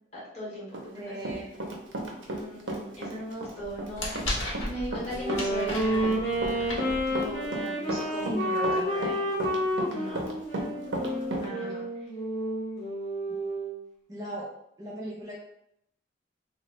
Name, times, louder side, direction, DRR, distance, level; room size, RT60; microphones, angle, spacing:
voice 1, 0.1-1.1 2.3-6.1 7.1-9.2 9.8-10.3 10.7-11.8, equal, 35° left, -7 dB, 1.2 m, -39 dB
Run, 0.7-2.4 2.7-11.5, right 1 dB, 65° right, 0.6 m, -34 dB
voice 2, 0.9-1.5 8.2-9.0 9.8-10.3 11.4-11.9 13.3-13.4 14.1-14.5 14.8-15.4, right 1 dB, 20° right, -6 dB, 0.5 m, -38 dB
sound 1, 3.6-7.6, left 1 dB, 85° left, 0.7 m, -36 dB
Wind instrument woodwind instrument, 5.1-13.8, equal, 60° left, 1.0 m, -30 dB
3.0 x 2.0 x 3.0 m, 0.76 s
head